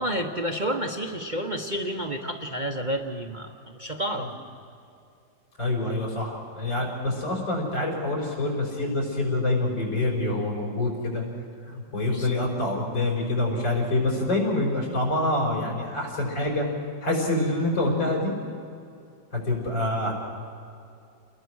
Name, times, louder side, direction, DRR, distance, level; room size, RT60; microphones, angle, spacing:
voice 1, 0.0-3.5 3.8-4.3 6.8-6.9 12.1-12.3, equal, 30° right, 1 dB, 1.1 m, -30 dB
voice 2, 5.6-11.2 11.7-16.7 17.0-18.3 19.3-20.1, left 2 dB, 80° left, 0 dB, 6.1 m, -26 dB
29.5 x 21.5 x 6.3 m, 2.6 s
omnidirectional pair, 2.0 m